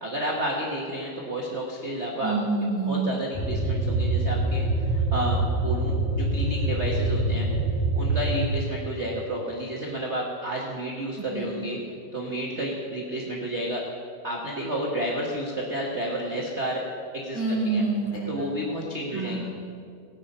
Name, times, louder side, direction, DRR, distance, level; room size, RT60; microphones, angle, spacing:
voice 1, 0.0-2.3 2.9-7.5 7.9-11.8 12.1-13.8 14.2-16.8 17.1-17.8 18.3-19.4, right 1 dB, 45° right, -2 dB, 0.8 m, -31 dB
voice 2, 2.2-3.1 11.2-11.5 17.3-18.5 19.1-19.4, right 3 dB, 45° left, -5 dB, 4.7 m, -27 dB
sound 1, 3.3-8.5, right 2 dB, 25° right, 2.1 m, -25 dB
17.5 x 9.2 x 5.5 m, 2.3 s
omnidirectional pair, 3.4 m